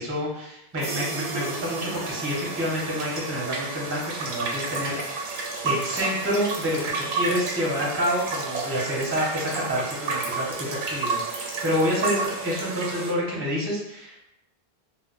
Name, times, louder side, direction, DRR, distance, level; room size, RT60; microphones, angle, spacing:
voice 1, 0.0-5.3 5.6-14.2, equal, 20° right, -3 dB, 0.5 m, -28 dB
sound 1, 0.8-13.1, right 4 dB, 80° right, 0.8 m, -31 dB
2.1 x 2.0 x 3.7 m, 0.82 s
omnidirectional pair, 1.0 m